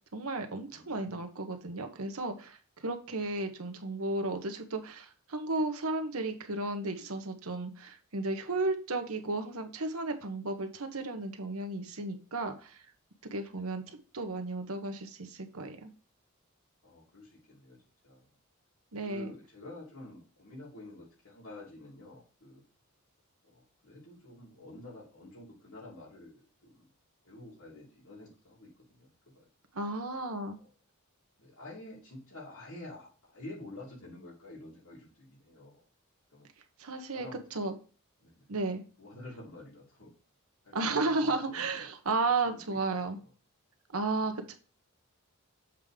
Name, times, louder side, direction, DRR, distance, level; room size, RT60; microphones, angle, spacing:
voice 1, 0.1-12.8 13.3-15.9 18.9-19.3 29.7-30.6 36.8-37.3 37.5-37.7 38.5-38.8 40.7-43.2 43.9-44.5, right 3 dB, 75° right, 6 dB, 1.1 m, -34 dB
voice 2, 0.7-1.2 13.5-13.9 16.8-17.8 18.0-18.3 19.0-22.6 23.4-26.9 27.2-29.4 30.6-30.7 31.4-35.8 36.3-36.5 37.1-37.7 38.2-38.6 39.0-40.1 40.6-41.9 42.2-42.8 43.2-43.3 44.1-44.3, left 1 dB, 75° left, -7 dB, 3.0 m, -49 dB
7.4 x 3.6 x 5.0 m, 0.37 s
head